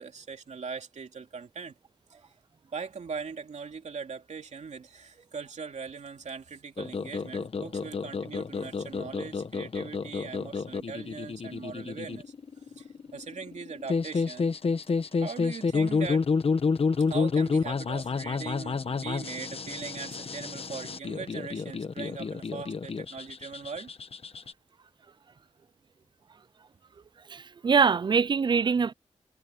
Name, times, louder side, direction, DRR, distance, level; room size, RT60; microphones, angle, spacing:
voice 1, 0.0-1.8 2.1-2.2 2.7-12.2 12.8-14.5 15.2-16.3 17.1-23.9, right 5 dB, 75° right, 2.9 m, -40 dB
sound 1, 6.8-24.5, left 4 dB, 55° left, 1.0 m, -30 dB
voice 2, 27.3-28.9, right 5 dB, 40° right, 0.3 m, -23 dB
wide cardioid pair, 125°, 12 cm